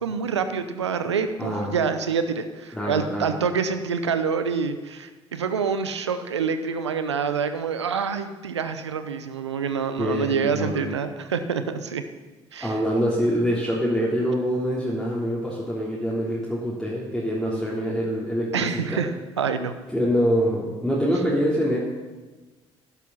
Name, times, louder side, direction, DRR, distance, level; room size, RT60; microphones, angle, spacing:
voice 1, 0.0-12.0 12.5-12.8 18.5-19.1 19.4-19.8, right 6 dB, 90° right, 10 dB, 0.8 m, -26 dB
voice 2, 1.4-1.7 2.7-3.3 10.0-10.7 12.6-19.0 19.9-21.8, equal, 5° left, -6 dB, 3.3 m, -25 dB
11.5 x 11.0 x 5.6 m, 1.2 s
figure-of-eight pair, 50°, 14 cm